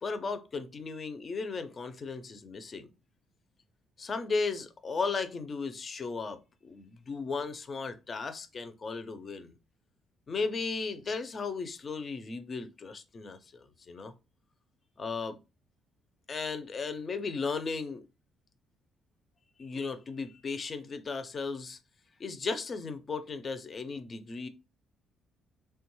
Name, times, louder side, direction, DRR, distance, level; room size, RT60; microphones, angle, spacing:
voice 1, 0.0-2.9 4.0-9.5 10.3-14.1 15.0-15.4 16.3-18.0 19.6-21.8 22.2-24.5, left 4 dB, 35° left, 0.5 m, -36 dB
3.3 x 2.2 x 3.0 m
cardioid pair, 115°, 0 cm